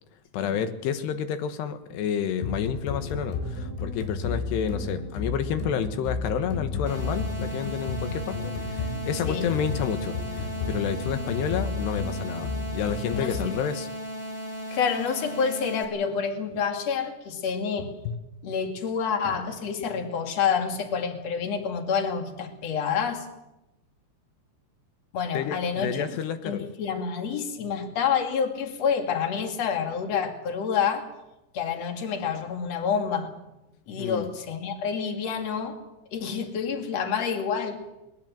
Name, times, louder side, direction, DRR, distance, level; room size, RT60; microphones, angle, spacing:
voice 1, 0.3-13.9 18.0-18.1 25.3-26.7 34.0-34.3, left 8 dB, 70° left, 9 dB, 3.2 m, -30 dB
sound 1, 2.4-13.4, left 3 dB, 90° left, 5.9 m, -32 dB
sound 2, 6.8-15.8, equal, 15° left, 4.3 m, -36 dB
voice 2, 14.7-18.0 18.4-23.3 25.1-26.2 26.4-31.1 31.5-33.3 33.9-35.8 36.1-37.8, left 6 dB, 45° left, 5 dB, 2.8 m, -28 dB
21.5 x 20.0 x 7.5 m, 0.94 s
omnidirectional pair, 5.4 m